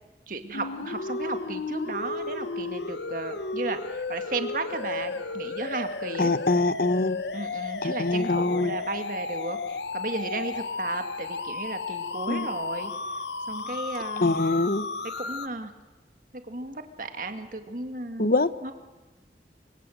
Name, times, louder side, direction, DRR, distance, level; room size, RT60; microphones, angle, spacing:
voice 1, 0.3-6.3 7.3-12.9 13.5-14.3 15.2-15.7 16.5-18.3 18.6-18.7, right 2 dB, 50° right, 7 dB, 2.0 m, -34 dB
sound 1, 0.5-15.5, left 3 dB, 85° left, 1.0 m, -34 dB
voice 2, 6.2-7.2 7.8-8.8 12.3-12.5 14.2-14.9 18.2-18.5, left 2 dB, 55° left, 14 dB, 0.9 m, -24 dB
24.5 x 24.0 x 7.9 m, 1.1 s
head